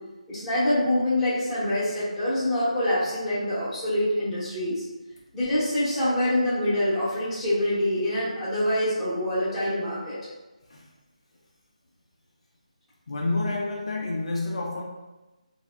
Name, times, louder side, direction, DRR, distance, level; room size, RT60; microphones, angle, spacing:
voice 1, 0.3-4.8 5.3-10.2, left 1 dB, 5° left, -15 dB, 0.8 m, -25 dB
voice 2, 13.1-14.8, left 2 dB, 55° left, -2 dB, 0.4 m, -29 dB
3.2 x 2.0 x 2.3 m, 1.1 s
figure-of-eight pair, 165°, 4 cm